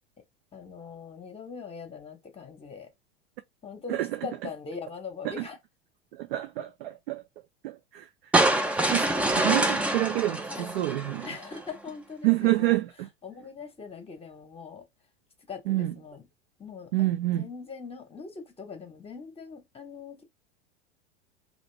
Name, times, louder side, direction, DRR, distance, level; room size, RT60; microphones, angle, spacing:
voice 1, 0.5-2.9 3.6-5.6 10.5-10.6 11.2-12.7 13.2-14.8 15.5-16.2 16.6-17.1 17.4-20.2, left 5 dB, 20° left, 1.0 m, -41 dB
voice 2, 3.9-4.5 5.2-5.5 6.1-7.2 7.6-8.1 8.9-11.4 12.2-13.1 15.7-16.0 16.9-17.5, right 17 dB, 60° right, 0.5 m, -28 dB
sound 1, 8.3-11.6, right 1 dB, 5° right, 0.4 m, -25 dB
2.9 x 2.6 x 3.3 m
figure-of-eight pair, 85°, 33 cm